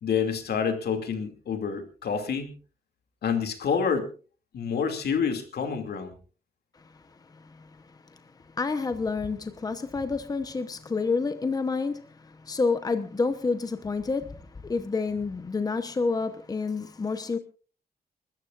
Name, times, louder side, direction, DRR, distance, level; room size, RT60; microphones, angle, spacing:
voice 1, 0.0-2.6 3.2-4.1 4.5-6.2, left 6 dB, 85° left, 2.6 m, -28 dB
voice 2, 6.7-17.4, left 4 dB, 25° left, 1.0 m, -29 dB
29.5 x 13.5 x 2.5 m
wide cardioid pair, 175°, 16 cm